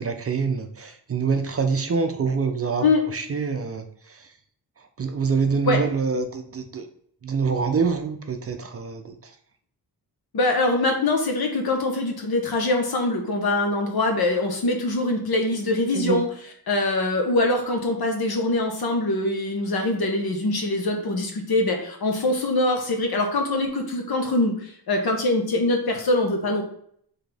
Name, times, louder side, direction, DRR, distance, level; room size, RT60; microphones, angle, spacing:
voice 1, 0.0-4.3 4.8-6.9 7.2-9.4 15.9-16.2, right 5 dB, 35° right, 6 dB, 0.5 m, -26 dB
voice 2, 10.3-16.3 16.7-26.6, left 2 dB, 65° left, 3 dB, 1.1 m, -23 dB
4.1 x 3.6 x 3.4 m, 0.64 s
wide cardioid pair, 115°, 40 cm